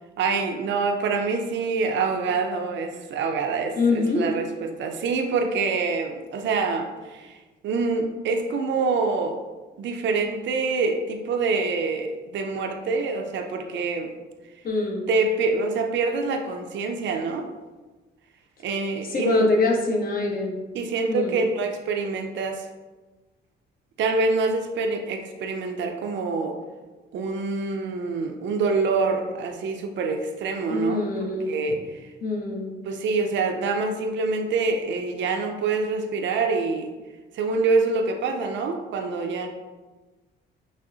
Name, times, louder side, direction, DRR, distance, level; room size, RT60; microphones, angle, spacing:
voice 1, 0.2-7.4 7.6-9.4 9.8-14.1 15.1-17.5 18.6-19.5 20.7-22.7 24.0-26.6 27.1-31.0 31.5-31.9 32.8-36.9 37.3-39.5, right 4 dB, 65° right, 4 dB, 0.5 m, -26 dB
voice 2, 3.8-4.2 14.6-15.0 19.0-20.6 21.1-21.3 30.7-31.5 32.2-32.7, left 3 dB, 45° left, -1 dB, 0.9 m, -24 dB
6.1 x 2.1 x 2.7 m, 1.2 s
cardioid pair, 90°, 20 cm